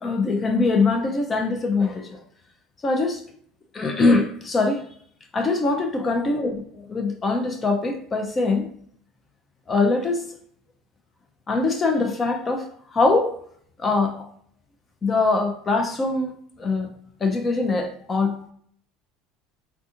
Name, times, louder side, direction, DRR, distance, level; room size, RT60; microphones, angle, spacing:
voice 1, 0.0-2.2 2.8-3.2 3.7-4.8 5.3-8.7 9.7-10.2 11.5-13.3 13.8-14.3 15.0-16.9 17.2-18.5, left 3 dB, 20° left, 5 dB, 0.4 m, -23 dB
3.4 x 2.7 x 2.4 m, 0.62 s
cardioid pair, 135°, 0 cm